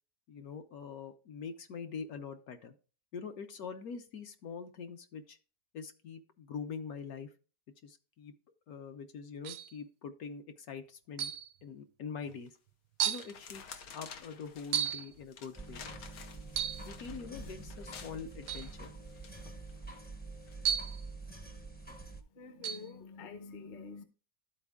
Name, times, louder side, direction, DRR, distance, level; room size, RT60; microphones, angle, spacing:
voice 1, 0.3-2.7 3.1-5.4 5.7-7.3 7.8-8.3 8.7-11.3 11.6-12.6 13.0-15.8 16.8-18.9, left 6 dB, 65° left, 1.2 m, -44 dB
sound 1, 9.4-9.8 11.2-11.5 12.3-12.4 13.0-13.3 14.7-15.1 16.5-16.9 18.5-18.7 20.6-21.0 22.6-22.9, right 9 dB, 80° right, 1.1 m, -33 dB
sound 2, 12.3-12.6 13.1-20.0 20.5-20.7, left 6 dB, 85° left, 1.5 m, -51 dB
sound 3, 15.6-22.2, right 3 dB, 10° left, 0.4 m, -46 dB
voice 2, 22.3-24.0, left 4 dB, 40° left, 0.8 m, -47 dB
12.5 x 4.3 x 3.5 m
omnidirectional pair, 1.8 m